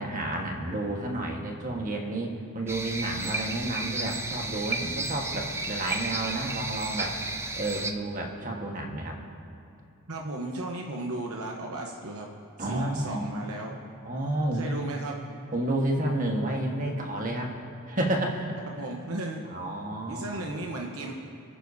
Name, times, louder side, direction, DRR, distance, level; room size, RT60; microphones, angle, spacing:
voice 1, 0.0-7.2 7.6-9.2 12.6-13.4 14.0-14.9 15.5-17.5 17.9-18.8 19.5-20.4, right 1 dB, 40° right, 1 dB, 1.4 m, -31 dB
sound 1, 2.7-7.9, right 2 dB, 10° right, 0.4 m, -33 dB
voice 2, 10.1-12.3 12.6-13.7 14.5-15.2 18.7-19.4 20.1-21.1, right 2 dB, 75° right, 0 dB, 1.0 m, -35 dB
28.0 x 10.0 x 2.8 m, 2.7 s
head